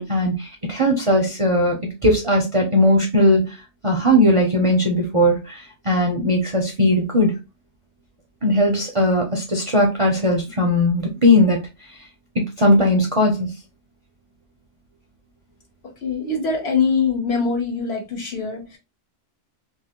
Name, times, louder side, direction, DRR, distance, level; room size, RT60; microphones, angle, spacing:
voice 1, 0.0-1.8 2.0-3.6 3.8-7.3 8.4-11.6 12.4-13.5, left 1 dB, 40° right, 0.5 m, -18 dB
voice 2, 16.0-18.8, left 5 dB, 60° left, 1.3 m, -23 dB
2.7 x 2.7 x 2.8 m
omnidirectional pair, 1.2 m